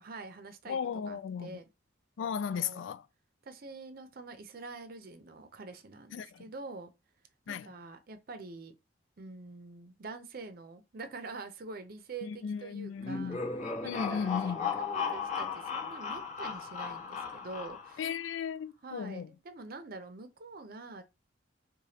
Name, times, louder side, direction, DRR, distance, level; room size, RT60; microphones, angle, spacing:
voice 1, 0.0-0.8 1.1-1.6 2.5-2.9 3.4-6.9 7.5-8.7 9.2-13.4 13.8-18.0 18.8-21.0, right 3 dB, 55° right, 0.6 m, -45 dB
voice 2, 0.7-1.6 2.2-3.0 6.1-6.4 7.5-7.7 12.2-13.5 13.8-14.7 18.0-19.3, left 7 dB, 85° left, 0.3 m, -36 dB
sound 1, 13.0-18.1, left 5 dB, 40° left, 1.3 m, -36 dB
4.9 x 2.3 x 2.8 m
head